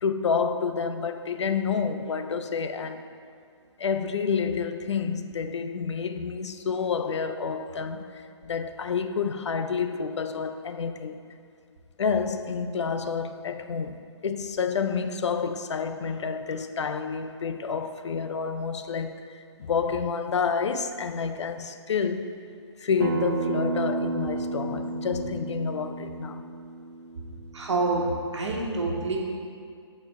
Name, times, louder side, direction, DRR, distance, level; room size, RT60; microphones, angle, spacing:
voice 1, 0.0-3.1 3.8-11.2 12.0-22.3 22.8-26.4, left 5 dB, 75° left, 0.5 m, -29 dB
Acoustic guitar, 23.0-28.2, right 4 dB, 45° right, 0.4 m, -32 dB
voice 2, 27.5-29.2, right 3 dB, 80° right, 1.4 m, -27 dB
7.8 x 4.3 x 4.2 m
hypercardioid pair, 155°, 15 cm